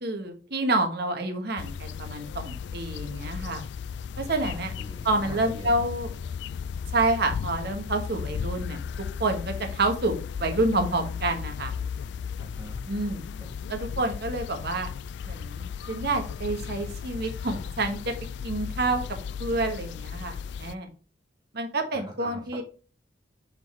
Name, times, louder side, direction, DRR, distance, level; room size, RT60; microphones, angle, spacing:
voice 1, 0.0-3.6 4.2-4.7 5.0-6.1 6.9-8.8 9.2-11.7 12.9-13.2 13.7-14.9 15.2-18.1 18.4-19.0 19.4-20.9 21.5-22.6, right 2 dB, 55° right, 5 dB, 1.3 m, -28 dB
sound 1, 1.6-20.7, left 6 dB, 65° left, 0.3 m, -35 dB
voice 2, 4.3-5.9 12.4-12.8 13.3-13.5 21.9-22.6, equal, 20° right, -5 dB, 1.8 m, -43 dB
7.1 x 4.0 x 4.3 m, 0.38 s
head